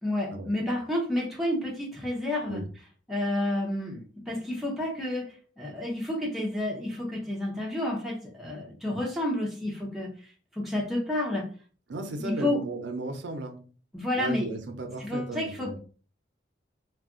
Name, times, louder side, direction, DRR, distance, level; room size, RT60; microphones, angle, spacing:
voice 1, 0.0-2.6 3.1-11.5 12.2-12.6 13.9-14.5 15.0-15.8, left 1 dB, ahead, -2 dB, 0.7 m, -30 dB
voice 2, 11.9-13.7 14.2-15.8, right 2 dB, 75° right, 5 dB, 0.5 m, -35 dB
2.4 x 2.2 x 3.6 m, 0.39 s
head